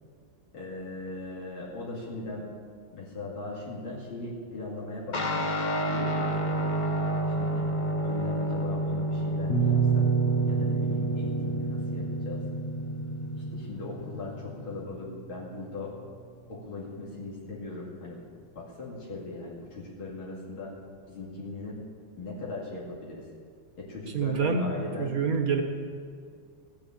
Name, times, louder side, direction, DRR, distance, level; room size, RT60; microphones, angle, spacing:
voice 1, 0.5-2.5 2.9-5.5 5.9-6.8 7.4-7.7 8.0-10.1 10.5-12.4 13.4-15.9 16.5-18.2 18.5-20.7 21.1-21.8 22.2-23.3 23.8-25.1, left 2 dB, 85° left, -5 dB, 3.3 m, -39 dB
Guitar, 5.1-14.8, equal, 35° left, 0.8 m, -30 dB
sound 1, 9.5-15.3, right 6 dB, 60° left, 1.8 m, -29 dB
voice 2, 24.1-24.7 25.0-25.6, right 5 dB, 50° right, 5 dB, 1.6 m, -26 dB
15.5 x 8.7 x 8.8 m, 2.1 s
omnidirectional pair, 2.2 m